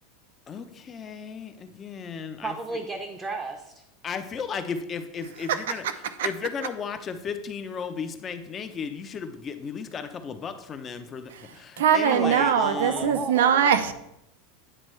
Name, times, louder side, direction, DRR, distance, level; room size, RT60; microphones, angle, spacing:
voice 1, 0.5-2.5 4.0-5.9 6.2-13.2, left 6 dB, 25° left, 9 dB, 0.6 m, -35 dB
voice 2, 2.4-3.8 12.1-13.7, right 4 dB, 20° right, 3 dB, 0.6 m, -32 dB
voice 3, 11.8-13.9, right 8 dB, 90° right, 11 dB, 0.6 m, -21 dB
8.9 x 4.4 x 3.2 m, 0.83 s
supercardioid pair, 135°, 0 cm